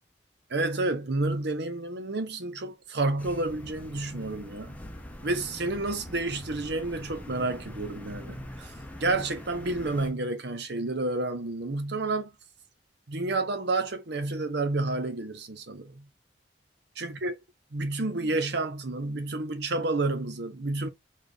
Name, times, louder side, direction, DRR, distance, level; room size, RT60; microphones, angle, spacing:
voice 1, 0.5-4.8 5.2-8.7 9.0-12.3 13.1-16.1 17.0-17.4 17.7-20.9, right 2 dB, 65° right, 0.9 m, -30 dB
sound 1, 3.2-10.1, left 1 dB, 10° left, 0.6 m, -43 dB
4.2 x 2.4 x 3.4 m
head